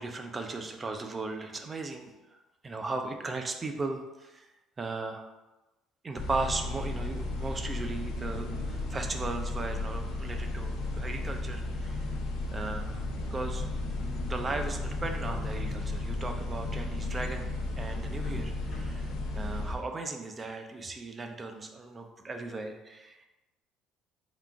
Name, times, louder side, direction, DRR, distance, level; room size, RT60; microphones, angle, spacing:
voice 1, 0.0-2.1 2.6-4.5 4.8-5.3 6.0-12.1 12.5-13.0 13.3-13.6 14.2-17.5 17.8-23.2, right 3 dB, 20° right, 5 dB, 0.4 m, -37 dB
sound 1, 6.2-19.7, left 2 dB, 70° left, 0.7 m, -34 dB
3.7 x 2.4 x 4.5 m, 1.1 s
cardioid pair, 160°, 0 cm